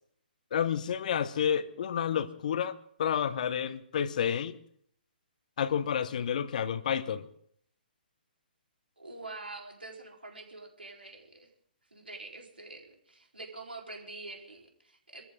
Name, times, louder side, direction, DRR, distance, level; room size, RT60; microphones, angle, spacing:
voice 1, 0.5-4.6 5.6-7.3, left 8 dB, 50° left, 1.0 m, -30 dB
voice 2, 9.0-11.5 11.9-15.2, right 3 dB, 85° right, 4.0 m, -45 dB
25.0 x 14.0 x 3.8 m
figure-of-eight pair, 130°, 5 cm